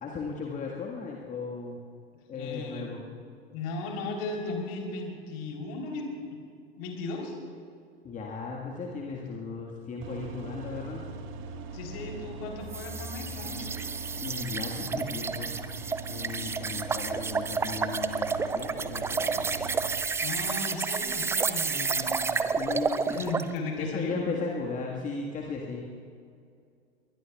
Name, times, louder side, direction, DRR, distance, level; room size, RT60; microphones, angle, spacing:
voice 1, 0.0-1.8 2.3-3.0 8.0-11.1 14.2-15.6 16.1-19.5 22.5-23.2 23.8-25.8, left 4 dB, 25° left, -1 dB, 1.6 m, -36 dB
voice 2, 2.3-2.9 3.5-6.4 6.8-7.3 11.7-13.7 20.2-22.4 23.1-24.3, left 3 dB, 45° left, 1 dB, 3.7 m, -36 dB
sound 1, 10.0-20.0, right 3 dB, 40° right, 1.6 m, -41 dB
sound 2, 12.7-23.5, right 5 dB, 10° right, 0.4 m, -30 dB
22.5 x 20.0 x 2.4 m, 2.4 s
figure-of-eight pair, 85°, 32 cm